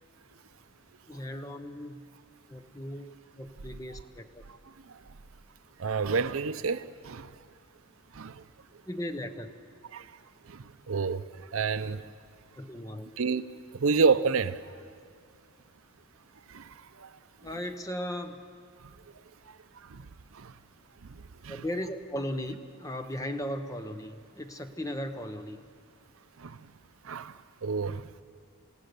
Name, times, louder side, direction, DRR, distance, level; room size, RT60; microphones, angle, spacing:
voice 1, 1.1-2.0 2.5-4.4 8.8-9.5 12.5-13.1 17.4-18.4 21.5-25.6, equal, 15° left, 7 dB, 1.0 m, -37 dB
voice 2, 5.8-7.3 8.2-8.3 9.9-10.0 10.5-10.6 10.9-11.2 11.5-12.0 13.2-13.4 13.8-14.6 16.5-16.6 17.0-17.1 19.9-20.0 20.4-20.5 21.4-21.6 26.4-26.6 27.1-27.3 27.6-28.0, right 5 dB, 70° right, 13 dB, 0.6 m, -28 dB
27.5 x 16.5 x 6.9 m, 2.1 s
head